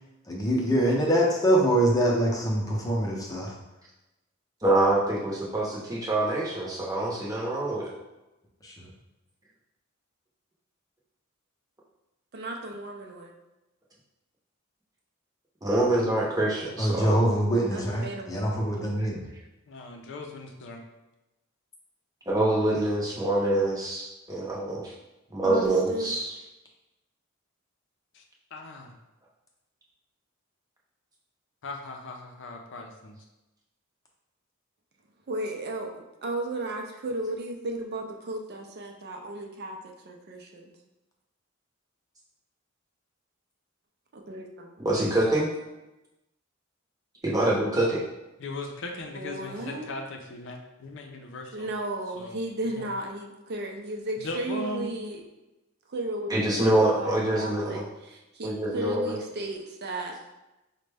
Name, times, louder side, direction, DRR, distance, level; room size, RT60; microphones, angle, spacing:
voice 1, 0.3-3.5 8.6-8.7 16.8-19.2, right 1 dB, 15° left, -2 dB, 0.7 m, -24 dB
voice 2, 4.6-7.9 15.6-17.2 19.0-19.1 22.3-24.9 25.3-26.3 44.8-45.5 47.2-48.0 56.3-57.8 58.4-59.2, right 1 dB, 20° right, -4 dB, 0.8 m, -25 dB
voice 3, 12.3-13.3 17.7-18.4 25.4-26.1 35.3-40.7 44.1-44.7 49.1-49.9 51.5-55.2 55.9-60.2, right 1 dB, 50° right, 1 dB, 0.5 m, -35 dB
voice 4, 19.7-20.8 28.1-28.2 28.5-28.9 31.6-33.1 48.4-51.7 52.2-52.4 52.8-52.9 54.2-54.9, left 2 dB, 60° left, 3 dB, 0.5 m, -38 dB
5.0 x 2.2 x 3.3 m, 0.99 s
head